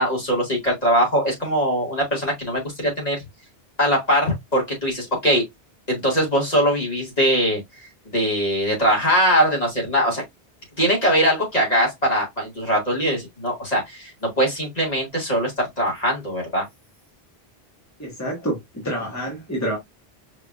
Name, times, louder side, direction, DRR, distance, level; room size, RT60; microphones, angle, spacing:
voice 1, 0.0-3.2 3.8-5.4 5.9-7.6 8.1-10.2 10.8-16.6, equal, 40° left, 2.3 m, -21 dB
voice 2, 18.0-19.8, right 1 dB, 15° left, 1.4 m, -28 dB
4.9 x 3.4 x 2.4 m
omnidirectional pair, 1.1 m